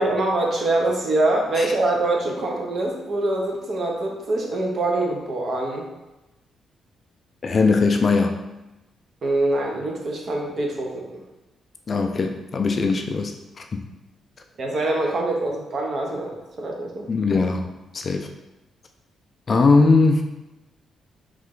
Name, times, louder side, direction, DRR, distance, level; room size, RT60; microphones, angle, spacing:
voice 1, 0.0-5.9 9.2-11.2 14.6-17.1, right 2 dB, 45° right, 0 dB, 0.7 m, -24 dB
voice 2, 7.4-8.4 11.9-13.8 17.1-17.7 17.9-18.3 19.5-20.2, left 4 dB, 35° left, 4 dB, 0.3 m, -20 dB
3.2 x 3.1 x 3.7 m, 1.0 s
cardioid pair, 150°, 0 cm